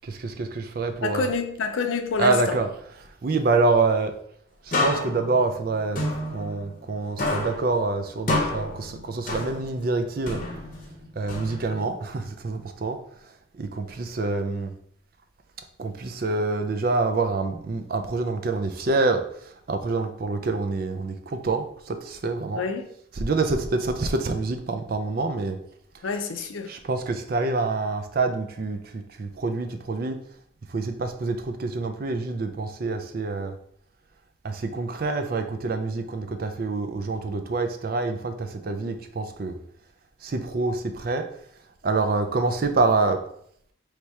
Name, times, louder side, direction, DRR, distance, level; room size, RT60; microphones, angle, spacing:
voice 1, 0.0-1.3 2.2-2.7 3.2-4.1 4.7-6.0 6.3-10.4 11.2-13.0 13.6-14.7 15.8-22.6 23.2-25.6 26.7-30.2 30.7-33.5 34.4-39.6 40.2-41.3 41.8-43.2, right 3 dB, 50° right, 0.4 m, -26 dB
voice 2, 1.0-2.6 22.5-22.9 26.0-26.7, left 4 dB, 85° left, 0.5 m, -27 dB
sound 1, 4.7-6.9 7.2-9.9 10.3-11.9, left 2 dB, 45° left, 0.8 m, -29 dB
3.2 x 2.8 x 4.6 m
head